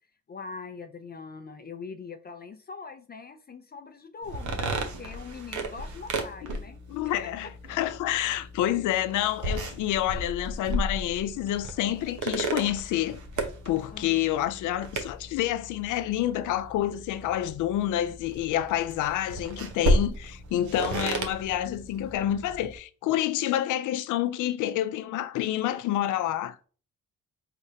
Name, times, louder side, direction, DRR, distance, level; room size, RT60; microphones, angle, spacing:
voice 1, 0.3-6.8 13.9-14.3, left 5 dB, 30° left, 0.5 m, -42 dB
sound 1, 4.2-22.8, right 1 dB, 75° right, 0.9 m, -34 dB
voice 2, 6.9-26.7, left 12 dB, 80° left, 0.5 m, -28 dB
4.7 x 3.3 x 2.8 m
cardioid pair, 90°, 30 cm